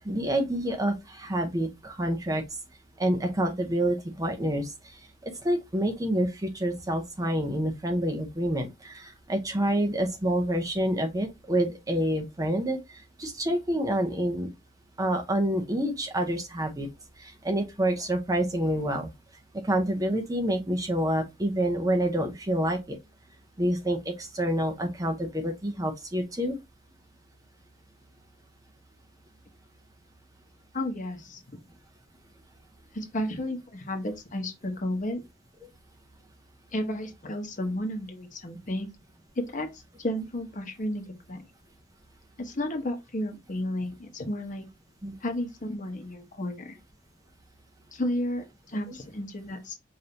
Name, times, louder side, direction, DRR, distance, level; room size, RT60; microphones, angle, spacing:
voice 1, 0.0-2.4 3.0-4.7 5.4-12.8 13.2-14.5 15.0-16.9 17.2-19.1 19.5-23.0 23.6-26.6 45.0-45.2, right 1 dB, 20° right, 0.7 m, -27 dB
voice 2, 30.7-31.4 32.9-35.2 36.7-38.9 39.5-41.4 42.4-44.6 45.2-46.8 47.9-49.7, left 1 dB, 40° left, 1.0 m, -32 dB
5.2 x 2.7 x 2.7 m
head